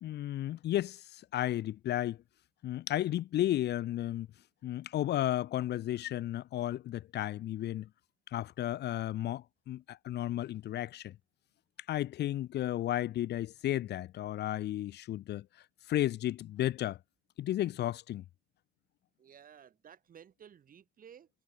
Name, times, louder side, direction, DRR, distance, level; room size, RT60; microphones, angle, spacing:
voice 1, 0.0-2.2 2.6-4.3 4.6-7.9 8.3-11.1 11.9-15.4 15.9-17.0 17.4-18.2, left 13 dB, 65° left, 0.6 m, -33 dB
voice 2, 19.2-21.3, right 8 dB, 50° right, 7.5 m, -55 dB
cardioid pair, 145°, 19 cm